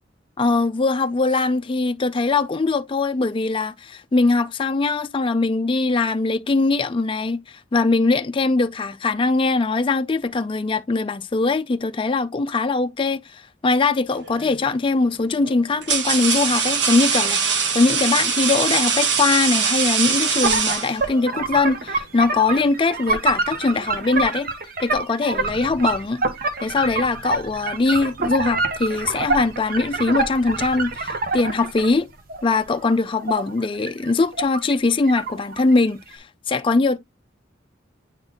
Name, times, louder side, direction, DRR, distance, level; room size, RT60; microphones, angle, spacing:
voice 1, 0.4-24.5 24.8-26.2 26.6-32.1 32.4-37.0, left 3 dB, 30° left, 0.4 m, -21 dB
sound 1, 14.2-14.6 15.4-21.3, right 6 dB, 65° right, 1.2 m, -22 dB
sound 2, 20.4-31.9 32.3-34.8 35.1-35.9, right 3 dB, 50° right, 1.0 m, -26 dB
8.8 x 3.9 x 2.9 m
head